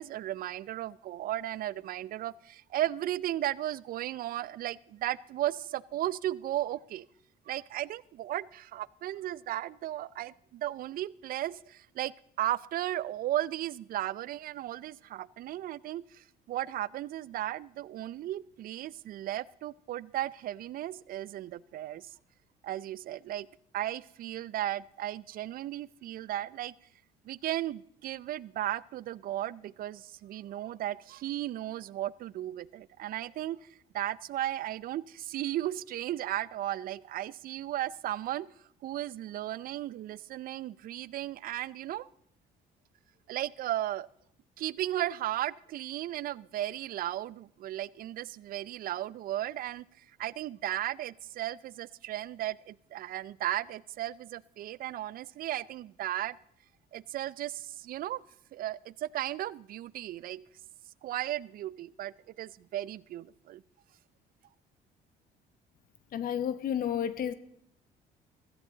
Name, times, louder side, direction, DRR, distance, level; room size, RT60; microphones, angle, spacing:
voice 1, 0.0-7.0 7.5-22.1 22.6-23.5 23.7-26.7 27.2-33.6 33.9-38.5 38.8-42.1 43.3-44.1 44.6-56.4 56.9-58.2 58.5-60.4 61.0-63.6, right 13 dB, 60° right, 0.5 m, -35 dB
voice 2, 66.1-67.3, left 9 dB, 60° left, 0.9 m, -31 dB
16.0 x 14.5 x 3.9 m
cardioid pair, 110°, 17 cm